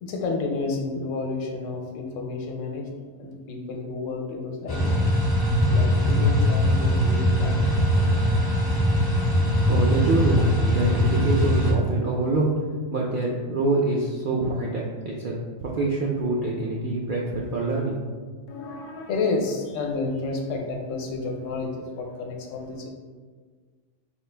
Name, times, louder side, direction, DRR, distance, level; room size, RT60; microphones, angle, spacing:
voice 1, 0.0-5.0 5.7-8.2 9.5-9.9 18.5-22.9, left 3 dB, 75° left, 2 dB, 1.0 m, -31 dB
sound 1, 4.7-11.7, equal, 35° left, 0.4 m, -21 dB
voice 2, 9.7-12.6 12.9-15.3 15.6-18.0, right 2 dB, 70° right, -3 dB, 0.5 m, -25 dB
4.8 x 2.4 x 3.3 m, 1.5 s
omnidirectional pair, 1.4 m